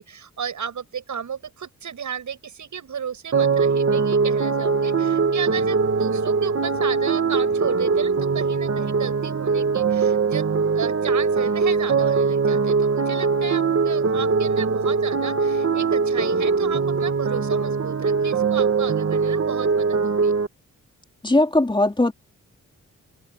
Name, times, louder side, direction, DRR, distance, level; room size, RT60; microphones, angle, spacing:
voice 1, 0.0-10.5 10.7-20.3, right 7 dB, 70° right, 7.9 m, -33 dB
sound 1, 3.3-20.5, right 5 dB, 50° right, 2.4 m, -21 dB
voice 2, 21.2-22.1, left 2 dB, 15° left, 4.1 m, -19 dB
wide cardioid pair, 125°, 31 cm